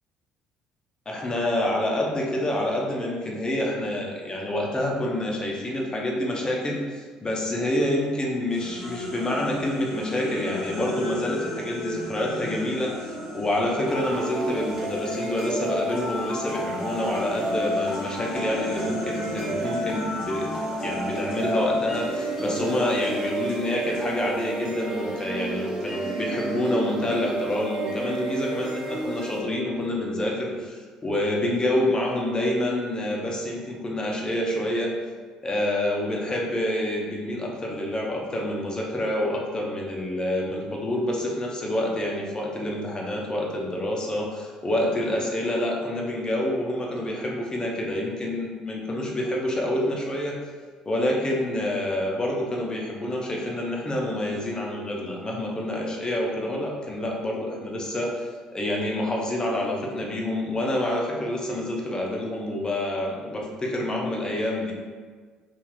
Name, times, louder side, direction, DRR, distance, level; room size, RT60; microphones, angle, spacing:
voice 1, 1.1-20.5 20.8-34.9 35.4-50.3 50.9-64.7, left 1 dB, 25° left, -1 dB, 0.7 m, -27 dB
sound 1, 8.5-15.6 15.9-24.5, left 1 dB, 75° left, 0.8 m, -37 dB
sound 2, 13.9-29.9, right 1 dB, 20° right, 1.1 m, -31 dB
2.7 x 2.5 x 3.8 m, 1.5 s
hypercardioid pair, 55°, 3 cm